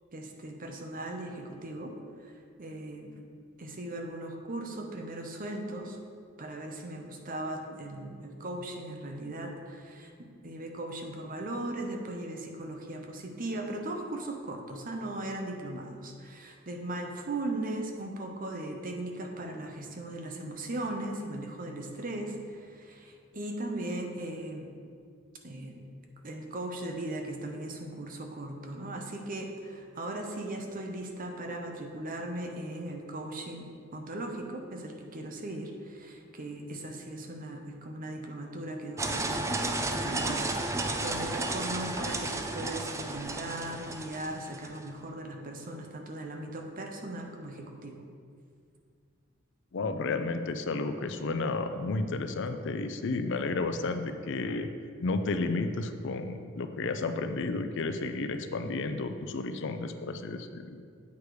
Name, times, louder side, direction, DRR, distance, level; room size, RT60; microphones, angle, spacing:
voice 1, 0.1-2.0 2.2-3.1 3.6-6.0 6.4-24.7 25.4-25.8 26.2-40.4 40.7-48.0, right 1 dB, 45° right, 3 dB, 0.9 m, -38 dB
sound 1, 39.0-44.8, right 2 dB, 15° right, 0.4 m, -33 dB
voice 2, 49.7-54.7 55.0-60.8, left 3 dB, 65° left, 8 dB, 0.5 m, -32 dB
8.2 x 4.8 x 4.9 m, 2.2 s
head